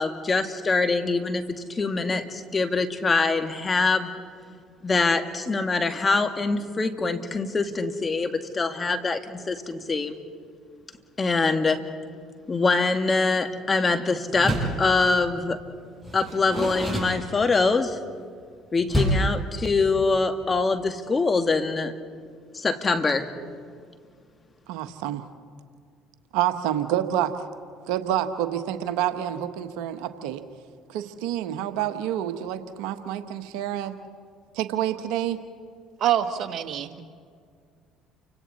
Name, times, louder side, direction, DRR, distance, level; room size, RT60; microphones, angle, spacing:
voice 1, 0.0-4.1 4.8-10.2 11.2-11.8 12.5-15.6 16.1-18.0 18.7-21.9 22.5-23.3, left 3 dB, 30° left, 7 dB, 2.0 m, -24 dB
Door, 14.3-14.9 16.0-17.7 18.9-19.4, right 1 dB, 10° right, 7.2 m, -27 dB
voice 2, 24.7-25.2 26.3-27.3 27.9-30.4 30.9-33.9 34.5-35.4, right 11 dB, 75° right, 10 dB, 1.2 m, -28 dB
voice 3, 36.0-37.0, right 11 dB, 60° right, 8 dB, 1.4 m, -25 dB
30.0 x 25.5 x 4.2 m, 2.1 s
hypercardioid pair, 70°, 0 cm